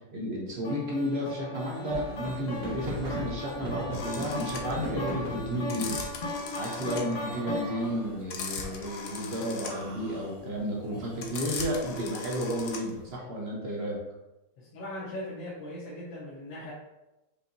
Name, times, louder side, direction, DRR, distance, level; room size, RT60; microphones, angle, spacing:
voice 1, 0.1-6.0 6.6-14.0, equal, 55° right, -3 dB, 0.7 m, -32 dB
sound 1, 0.6-8.1, left 1 dB, 55° left, 1.1 m, -37 dB
sound 2, 1.6-6.0 6.9-8.2 8.6-9.2 9.7-11.5, right 1 dB, 75° right, 1.7 m, -40 dB
sound 3, 3.9-13.1, left 5 dB, 70° left, 0.8 m, -39 dB
voice 2, 7.3-7.6 14.6-16.7, left 1 dB, 90° left, -6 dB, 1.5 m, -39 dB
5.2 x 2.8 x 2.6 m, 0.98 s
omnidirectional pair, 2.0 m